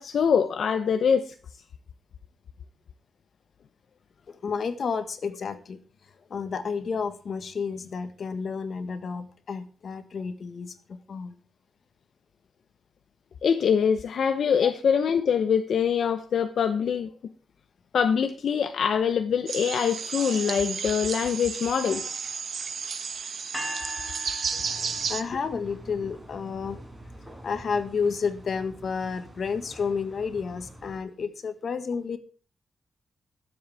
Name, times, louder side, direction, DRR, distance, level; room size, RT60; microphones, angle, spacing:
voice 1, 0.0-1.3 13.4-17.1 17.9-22.2 24.5-24.6, left 7 dB, 80° left, 0.9 m, -24 dB
voice 2, 4.3-5.8 6.3-11.4 14.6-14.7 25.1-26.8 27.4-32.2, left 5 dB, 60° left, 1.6 m, -31 dB
sound 1, 19.5-25.2, right 6 dB, 65° right, 1.4 m, -32 dB
sound 2, 23.5-25.6, equal, 5° left, 3.0 m, -39 dB
sound 3, 24.5-31.0, right 1 dB, 10° right, 4.8 m, -46 dB
22.0 x 7.9 x 3.5 m
wide cardioid pair, 135°, 0 cm